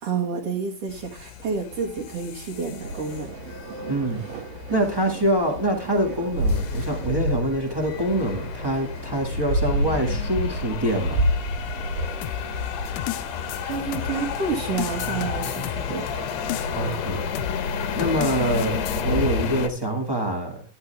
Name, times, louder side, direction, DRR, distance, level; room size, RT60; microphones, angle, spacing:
voice 1, 0.0-3.3 13.6-16.1, right 5 dB, 50° right, -3 dB, 2.3 m, -29 dB
sound 1, 0.9-19.7, left 7 dB, 65° left, 1.7 m, -32 dB
sound 2, 2.8-19.5, right 1 dB, 75° right, 3.0 m, -31 dB
voice 2, 3.9-4.2 4.7-11.2 16.7-17.3 17.9-20.6, right 1 dB, 30° right, 0 dB, 0.4 m, -25 dB
sound 3, 12.2-14.4 14.8-17.0 17.4-17.6 18.0-19.0, left 15 dB, 90° left, 1.6 m, -33 dB
11.5 x 11.5 x 3.3 m, 0.40 s
omnidirectional pair, 4.0 m